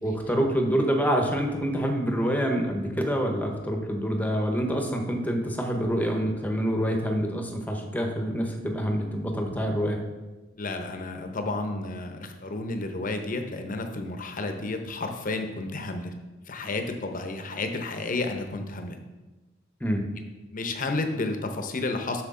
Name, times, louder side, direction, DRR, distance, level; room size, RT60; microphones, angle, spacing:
voice 1, 0.0-10.0 19.8-20.1, equal, 10° left, 3 dB, 0.9 m, -26 dB
voice 2, 10.6-16.1 16.5-19.0 20.5-22.2, left 2 dB, 45° left, 5 dB, 0.8 m, -31 dB
8.0 x 6.3 x 3.7 m, 1.2 s
head